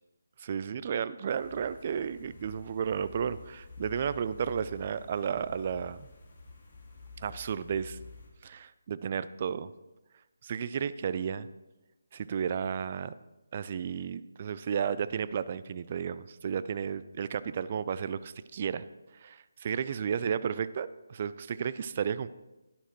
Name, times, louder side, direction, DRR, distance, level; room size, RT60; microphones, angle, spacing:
voice 1, 0.4-6.1 7.2-8.0 8.4-9.7 10.4-11.5 12.1-13.1 13.5-18.8 19.2-22.3, right 7 dB, 35° right, 15 dB, 0.4 m, -33 dB
sound 1, 1.3-8.3, left 4 dB, 35° left, 3.0 m, -50 dB
11.5 x 11.0 x 3.1 m, 1.0 s
figure-of-eight pair, 150°, 0 cm